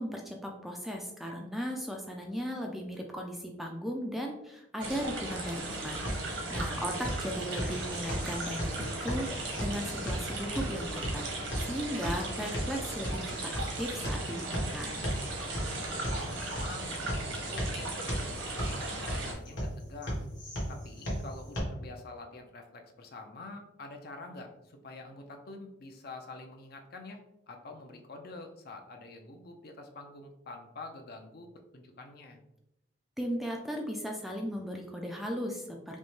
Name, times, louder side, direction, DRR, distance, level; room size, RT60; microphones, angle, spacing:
voice 1, 0.0-14.9 33.2-36.0, equal, ahead, 1 dB, 0.3 m, -37 dB
sound 1, 4.8-19.3, right 2 dB, 75° right, 1.0 m, -37 dB
sound 2, 5.6-21.6, equal, 65° left, 1.4 m, -37 dB
voice 2, 15.7-20.2 20.7-27.2 27.5-32.4, left 2 dB, 50° left, 4 dB, 0.5 m, -47 dB
5.2 x 2.1 x 3.1 m, 0.87 s
head